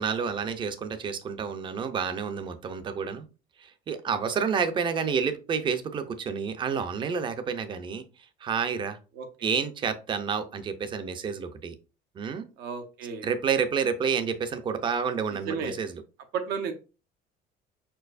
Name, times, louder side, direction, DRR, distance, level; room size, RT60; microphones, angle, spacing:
voice 1, 0.0-3.3 3.6-8.0 8.4-9.0 9.4-11.7 12.2-12.4 13.2-15.9, right 6 dB, 30° right, 0.5 m, -29 dB
voice 2, 9.1-9.5 12.6-13.3 15.4-15.7 16.3-16.7, right 6 dB, 80° right, 1.0 m, -33 dB
4.7 x 4.5 x 2.5 m
cardioid pair, 160°, 17 cm